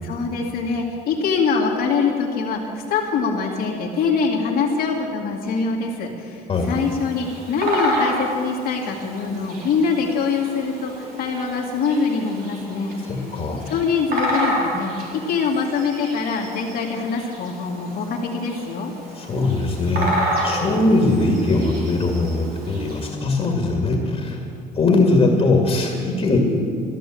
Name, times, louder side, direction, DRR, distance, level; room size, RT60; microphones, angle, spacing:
voice 1, 0.0-12.9 13.7-18.9, left 5 dB, 65° left, -3 dB, 2.3 m, -24 dB
Bird vocalization bird call bird song, 6.5-23.1, equal, 60° right, 4.3 m, -30 dB
voice 2, 13.1-13.6 19.1-24.4 24.7-26.4, left 2 dB, 35° left, 0 dB, 2.3 m, -20 dB
14.5 x 10.5 x 7.7 m, 2.4 s
cardioid pair, 110°, 17 cm